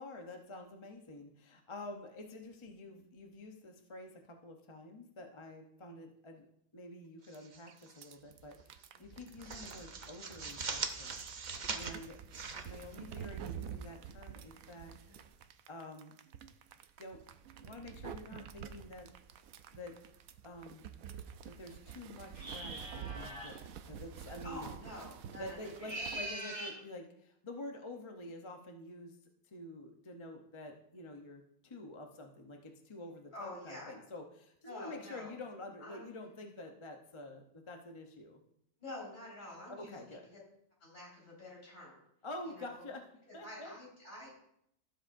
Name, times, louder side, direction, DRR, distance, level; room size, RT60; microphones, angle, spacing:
voice 1, 0.0-6.5 6.7-11.1 11.7-12.2 12.6-14.9 15.7-16.1 17.0-17.2 17.6-19.1 19.7-20.0 20.4-20.9 21.4-23.6 23.8-24.7 25.4-29.2 29.5-38.4 39.8-40.3 42.2-43.0 43.3-43.7, left 2 dB, 25° left, 3 dB, 0.7 m, -48 dB
sound 1, 7.2-8.1 8.4-8.6 9.0-13.5, right 5 dB, 40° right, 0.7 m, -42 dB
sound 2, 7.3-7.4 7.7-26.3, right 8 dB, 80° right, 1.1 m, -48 dB
sound 3, 22.3-23.6 25.7-26.8, right 1 dB, 25° right, 2.1 m, -42 dB
voice 2, 24.3-25.6 33.3-33.9 34.6-35.3 35.8-36.1 38.8-40.2 40.8-42.0 42.5-42.8 43.3-44.3, left 1 dB, 60° left, -5 dB, 5.0 m, -48 dB
15.5 x 7.5 x 2.6 m, 0.74 s
omnidirectional pair, 1.4 m